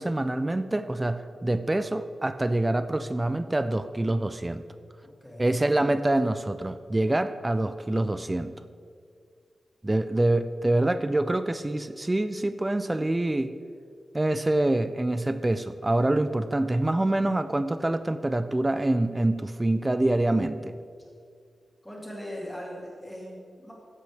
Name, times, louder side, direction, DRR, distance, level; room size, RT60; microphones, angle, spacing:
voice 1, 0.0-4.6 5.4-8.6 9.8-13.6 14.1-20.7, right 1 dB, 15° right, 11 dB, 0.4 m, -26 dB
voice 2, 5.2-5.5 21.8-23.7, equal, 5° left, -4 dB, 2.6 m, -39 dB
15.0 x 8.1 x 3.4 m, 2.1 s
wide cardioid pair, 120°, 0 cm